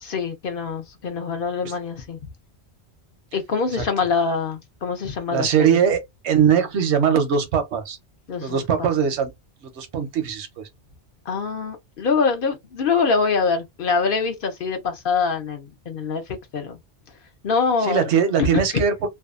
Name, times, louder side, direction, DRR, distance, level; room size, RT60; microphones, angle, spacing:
voice 1, 0.0-2.2 3.3-5.8 8.3-8.9 11.3-16.8 17.4-18.1 18.7-18.8, left 5 dB, 60° left, 0.8 m, -24 dB
voice 2, 5.3-8.0 8.4-9.3 9.6-10.7 17.8-18.9, right 7 dB, 85° right, 1.0 m, -21 dB
2.7 x 2.2 x 2.4 m
omnidirectional pair, 1.1 m